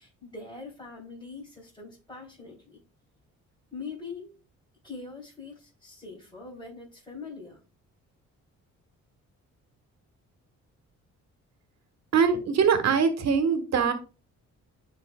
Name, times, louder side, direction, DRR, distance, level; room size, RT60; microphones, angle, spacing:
voice 1, 0.0-2.8 3.7-4.3 4.8-7.6, left 4 dB, 15° left, -8 dB, 4.0 m, -42 dB
voice 2, 12.1-13.9, right 6 dB, 60° right, 8 dB, 1.5 m, -22 dB
9.9 x 4.6 x 2.3 m, 0.32 s
cardioid pair, 90°, 30 cm